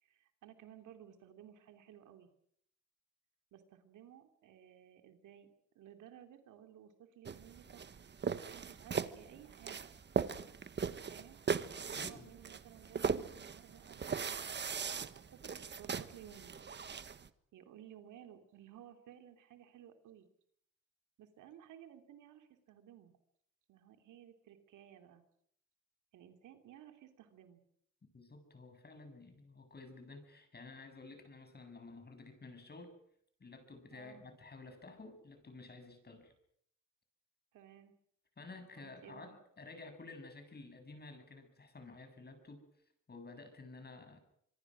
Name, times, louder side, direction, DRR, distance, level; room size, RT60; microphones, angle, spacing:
voice 1, 0.0-2.3 3.5-5.5 5.7-8.0 8.3-10.0 11.1-11.4 11.8-15.5 15.8-16.5 17.5-20.3 21.2-23.1 23.7-25.2 26.1-27.6 33.9-34.2 37.5-37.9 38.8-39.4, right 10 dB, 80° right, 6 dB, 3.1 m, -57 dB
sound 1, 7.3-17.3, right 6 dB, 35° right, 1.3 m, -39 dB
voice 2, 12.0-12.3 28.1-32.9 33.4-36.3 38.4-42.6 43.1-44.2, left 3 dB, 35° left, 8 dB, 7.2 m, -52 dB
25.5 x 23.0 x 6.3 m, 0.67 s
cardioid pair, 90°, 30 cm